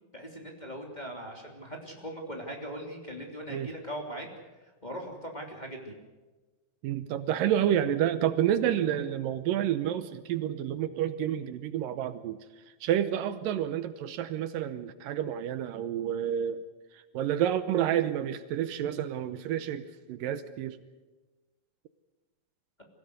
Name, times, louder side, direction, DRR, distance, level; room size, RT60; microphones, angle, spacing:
voice 1, 0.1-4.3 4.8-5.9, equal, 15° left, 1 dB, 2.8 m, -40 dB
voice 2, 6.8-12.4 12.8-16.6 16.9-19.8 20.1-20.8, right 10 dB, 80° right, 12 dB, 2.4 m, -29 dB
24.5 x 16.5 x 8.1 m, 1.2 s
omnidirectional pair, 4.1 m